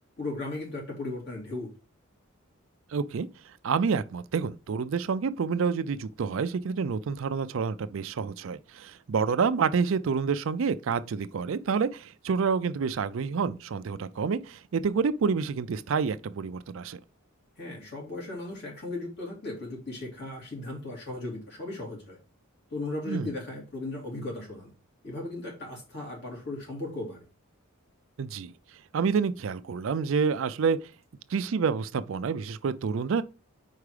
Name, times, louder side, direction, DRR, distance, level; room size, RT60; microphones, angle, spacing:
voice 1, 0.2-1.7 17.6-22.2 22.7-24.7 25.0-27.2, left 2 dB, 50° left, 3.0 m, -36 dB
voice 2, 2.9-3.3 3.6-17.0 23.1-23.3 28.2-28.5 28.9-30.8 31.3-33.2, right 5 dB, 65° right, 0.4 m, -28 dB
4.8 x 4.7 x 4.9 m
head